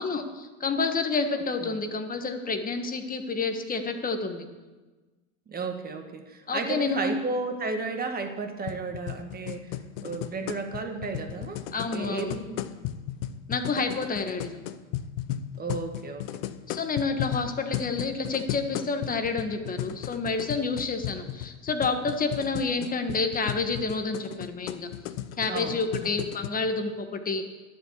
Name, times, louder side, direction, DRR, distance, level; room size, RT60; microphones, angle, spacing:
voice 1, 0.0-4.4 6.5-7.1 11.7-12.4 13.5-14.6 16.7-24.9 25.4-27.5, left 4 dB, 25° left, 6 dB, 1.4 m, -29 dB
voice 2, 5.5-9.7 10.0-11.6 11.9-12.8 15.6-16.3 25.5-26.1, right 4 dB, 25° right, 5 dB, 1.8 m, -33 dB
sound 1, 8.7-26.5, left 12 dB, 65° left, 0.8 m, -35 dB
11.5 x 7.3 x 8.4 m, 1.2 s
supercardioid pair, 105°, 37 cm